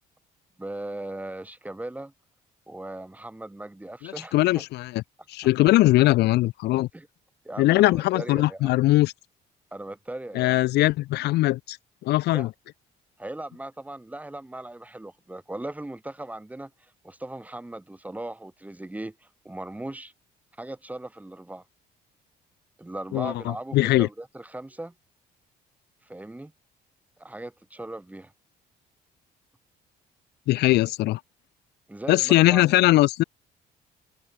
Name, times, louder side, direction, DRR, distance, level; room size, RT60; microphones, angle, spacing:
voice 1, 0.6-2.1 2.7-4.6 6.9-7.1 7.4-8.8 9.7-10.6 12.3-12.5 13.2-20.1 20.6-21.6 22.8-24.9 26.0-26.5 27.2-28.3 31.9-32.8, right 1 dB, 10° right, 7.4 m, -38 dB
voice 2, 4.0-5.0 5.3-6.9 7.6-9.1 10.3-11.8 12.0-12.5 23.1-24.1 30.5-31.2 32.1-33.2, left 17 dB, 80° left, 1.3 m, -21 dB
cardioid pair, 110°, 17 cm